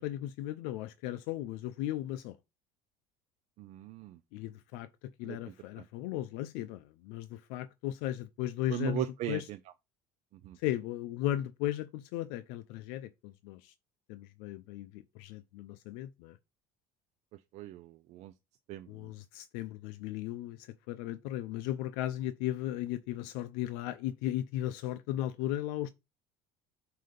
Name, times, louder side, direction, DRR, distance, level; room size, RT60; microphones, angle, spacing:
voice 1, 0.0-2.4 4.3-4.9 5.2-9.5 10.6-13.7 14.1-16.4 18.9-25.9, left 13 dB, 80° left, 0.5 m, -36 dB
voice 2, 3.6-4.2 5.2-5.4 8.7-9.4 10.4-10.6 17.5-18.3 18.7-18.9, right 13 dB, 45° right, 0.4 m, -37 dB
7.6 x 2.8 x 5.1 m
cardioid pair, 160°, 16 cm